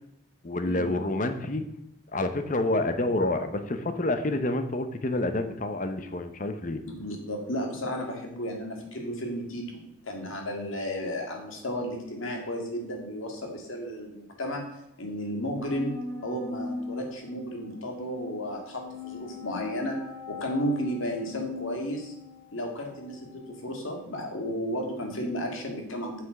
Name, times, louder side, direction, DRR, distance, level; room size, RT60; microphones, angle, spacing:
voice 1, 0.4-1.7 2.1-6.8, left 2 dB, 40° left, 8 dB, 0.7 m, -28 dB
voice 2, 6.9-14.7 15.0-20.0 20.3-22.1 22.5-26.3, equal, 75° left, 2 dB, 2.0 m, -33 dB
sound 1, 15.6-23.8, left 3 dB, 75° right, 2.4 m, -41 dB
8.0 x 6.0 x 5.8 m, 0.83 s
head